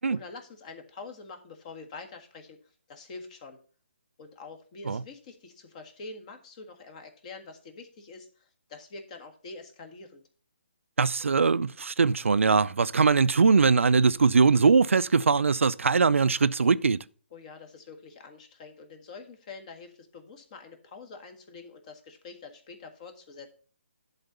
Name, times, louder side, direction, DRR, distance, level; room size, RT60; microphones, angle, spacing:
voice 1, 0.0-2.6 2.9-3.6 4.2-10.2 17.3-23.5, left 4 dB, 35° left, 1.6 m, -45 dB
voice 2, 11.0-17.0, right 5 dB, 85° right, 0.4 m, -21 dB
11.0 x 4.0 x 6.7 m
hypercardioid pair, 150°, 7 cm